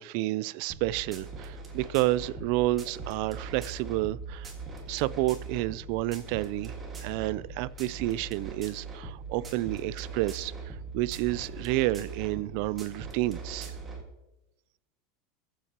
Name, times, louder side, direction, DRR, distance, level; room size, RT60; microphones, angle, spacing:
voice 1, 0.0-4.5 4.9-6.7 7.0-13.8, right 17 dB, 60° right, 0.3 m, -30 dB
sound 1, 0.7-14.0, right 4 dB, 20° right, 1.9 m, -41 dB
21.0 x 7.5 x 2.9 m
supercardioid pair, 145°, 0 cm